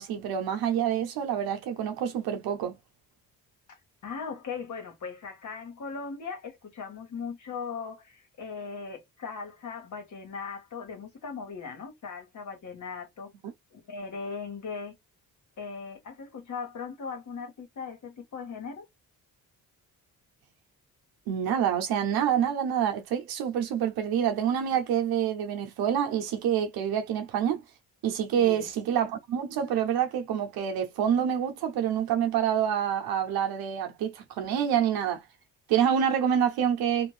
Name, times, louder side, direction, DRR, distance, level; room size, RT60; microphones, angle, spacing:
voice 1, 0.0-2.7 21.3-27.6 28.0-35.2 35.7-37.1, right 9 dB, 90° right, 0.7 m, -27 dB
voice 2, 4.0-13.3 13.7-14.9 15.6-18.8 28.4-28.6, left 5 dB, 55° left, 1.4 m, -38 dB
2.5 x 2.4 x 3.3 m
cardioid pair, 105°, 36 cm